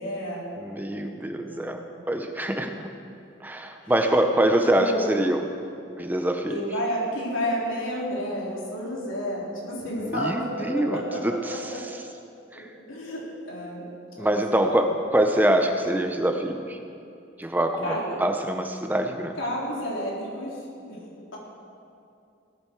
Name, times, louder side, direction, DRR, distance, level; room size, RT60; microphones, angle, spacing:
voice 1, 0.0-0.5 1.4-1.8 3.8-4.1 4.5-5.2 6.5-11.8 12.7-14.8 17.8-18.2 19.4-21.0, equal, 80° left, -4 dB, 3.7 m, -31 dB
voice 2, 0.6-1.8 2.1-2.9 3.4-5.5 6.0-6.6 10.0-11.7 12.5-12.7 14.2-16.8 17.4-19.4, right 1 dB, 10° right, 5 dB, 0.6 m, -25 dB
17.5 x 12.5 x 4.5 m, 2.6 s
head